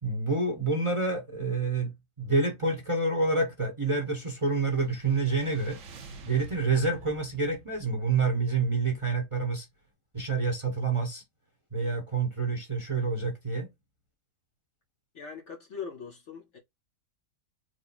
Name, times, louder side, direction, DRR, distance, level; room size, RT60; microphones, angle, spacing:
voice 1, 0.0-1.9 2.2-5.8 6.3-9.7 10.1-11.2 11.7-13.7, right 3 dB, 20° right, 1.0 m, -28 dB
sound 1, 4.2-9.6, right 3 dB, 55° right, 1.2 m, -50 dB
voice 2, 15.1-16.6, left 6 dB, 55° left, 1.0 m, -41 dB
4.8 x 2.1 x 4.2 m
omnidirectional pair, 1.7 m